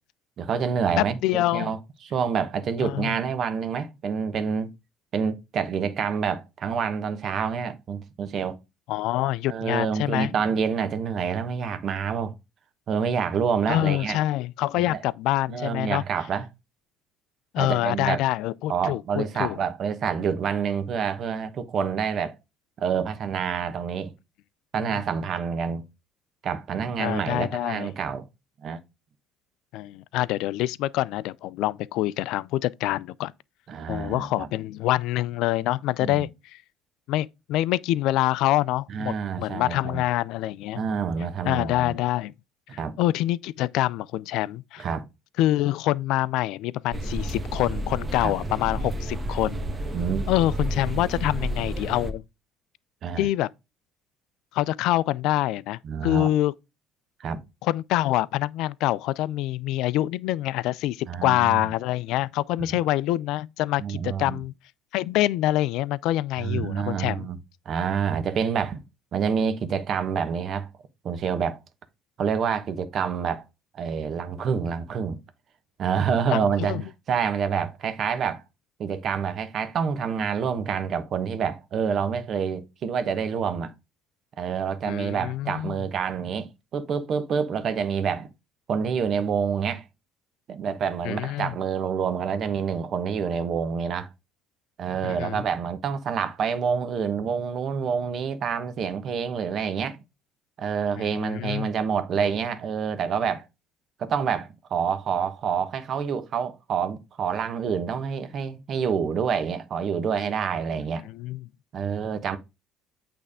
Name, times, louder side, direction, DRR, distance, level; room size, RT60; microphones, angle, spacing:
voice 1, 0.4-4.7 5.1-8.6 9.5-12.3 12.9-14.2 14.8-15.0 15.5-16.5 17.6-18.2 18.7-22.3 22.8-24.1 24.7-25.8 26.4-28.2 28.6-28.8 33.7-34.5 36.0-36.3 38.9-40.0 40.8-42.0 42.7-42.9 44.8-45.0 48.2-48.3 49.9-50.2 53.0-53.3 55.8-56.3 57.2-57.4 61.1-61.6 62.6-62.8 63.8-64.4 66.4-67.4 67.6-68.8 69.1-70.7 71.0-71.6 72.2-73.4 73.7-75.2 75.8-76.8 77.1-78.4 78.8-83.7 84.4-88.3 88.7-89.8 90.5-94.1 94.8-100.0 100.6-103.5 104.0-111.1 111.7-112.4, right 6 dB, 50° right, 1.1 m, -27 dB
voice 2, 1.0-1.7 2.8-3.2 8.9-10.3 13.7-16.0 17.5-19.6 24.9-25.0 27.0-27.9 29.7-33.3 33.9-36.3 37.1-40.8 41.4-42.3 42.7-44.8 45.4-49.6 50.3-52.2 53.2-53.5 54.5-56.5 57.6-64.5 64.9-67.3 76.3-76.8 84.9-85.8 91.0-91.5 95.0-95.4 101.0-101.7 111.1-111.5, left 15 dB, 70° left, 0.3 m, -26 dB
sound 1, 46.9-52.1, right 1 dB, 25° right, 1.3 m, -30 dB
8.5 x 3.4 x 4.9 m
hypercardioid pair, 65°, 0 cm